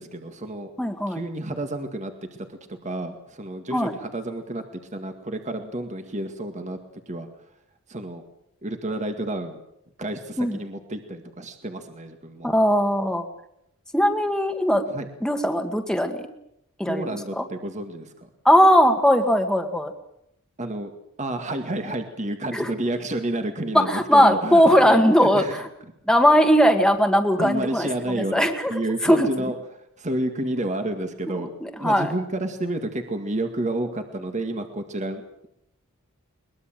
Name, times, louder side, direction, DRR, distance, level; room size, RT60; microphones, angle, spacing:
voice 1, 0.0-0.7 1.1-6.8 7.1-7.3 7.9-8.2 8.6-9.6 10.0-12.5 14.9-15.1 16.9-18.3 20.6-20.9 21.2-25.7 27.4-31.5 31.8-35.5, right 1 dB, 35° right, 6 dB, 2.1 m, -30 dB
voice 2, 0.8-1.2 3.7-3.9 10.4-10.6 12.4-13.2 13.9-14.8 15.2-16.3 16.8-17.4 18.5-19.9 22.5-22.7 23.8-25.7 26.1-27.9 28.3-28.7 29.0-29.3 31.6-32.1, equal, 5° left, 5 dB, 1.9 m, -19 dB
22.5 x 21.0 x 7.7 m, 0.78 s
head